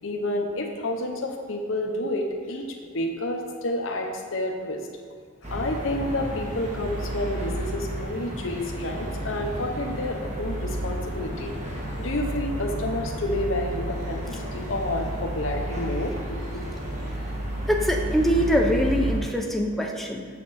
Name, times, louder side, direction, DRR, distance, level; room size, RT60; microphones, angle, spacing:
voice 1, 0.0-2.7 2.9-4.8 5.5-16.8, left 1 dB, 70° left, 2 dB, 0.9 m, -30 dB
sound 1, 5.4-19.2, right 1 dB, 35° right, 1.4 m, -31 dB
voice 2, 17.6-20.3, equal, ahead, 0 dB, 0.6 m, -23 dB
7.2 x 6.8 x 4.2 m, 2.1 s
head